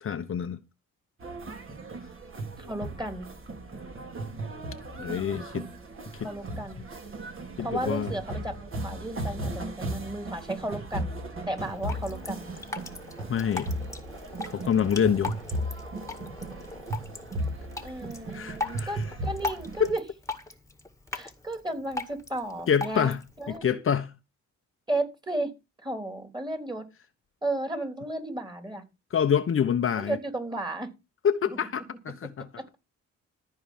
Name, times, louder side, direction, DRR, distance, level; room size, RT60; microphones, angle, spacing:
voice 1, 0.0-0.6 5.0-5.6 6.1-6.3 7.6-8.1 13.3-13.7 14.5-15.3 18.3-18.9 19.8-19.9 22.7-23.2 23.6-24.1 29.1-30.2 31.2-32.5, left 8 dB, 45° left, 1.0 m, -26 dB
sound 1, 1.2-19.9, right 1 dB, 45° right, 3.4 m, -36 dB
voice 2, 2.6-3.3 6.2-6.8 7.6-11.1 11.5-12.5 17.8-20.0 21.1-23.8 24.9-25.5 25.8-26.9 27.4-28.8 30.0-30.9 31.5-31.6 32.6-32.8, right 1 dB, 15° right, 3.6 m, -34 dB
Drip, 11.6-23.6, left 3 dB, 10° left, 1.9 m, -39 dB
14.0 x 4.8 x 7.4 m
cardioid pair, 90°, 30 cm